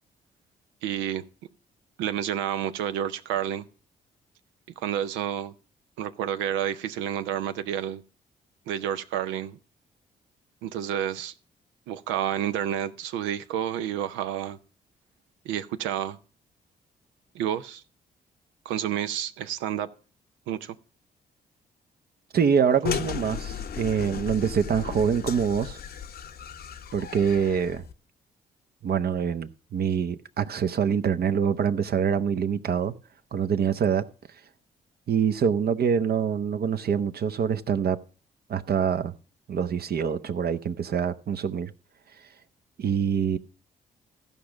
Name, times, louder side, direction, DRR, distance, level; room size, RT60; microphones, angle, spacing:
voice 1, 0.8-1.2 2.0-3.7 4.8-5.5 6.0-8.0 8.7-9.6 10.6-11.3 11.9-14.6 15.4-16.2 17.3-17.8 18.7-19.9 20.5-20.8, right 10 dB, 80° right, 0.6 m, -29 dB
voice 2, 22.3-25.8 26.9-27.8 28.8-32.9 33.3-34.0 35.1-38.0 38.5-39.1 39.5-41.7 42.8-43.4, right 7 dB, 55° right, 0.8 m, -25 dB
sound 1, 22.9-27.9, left 7 dB, 55° left, 0.8 m, -35 dB
14.5 x 5.3 x 6.0 m
hypercardioid pair, 45°, 19 cm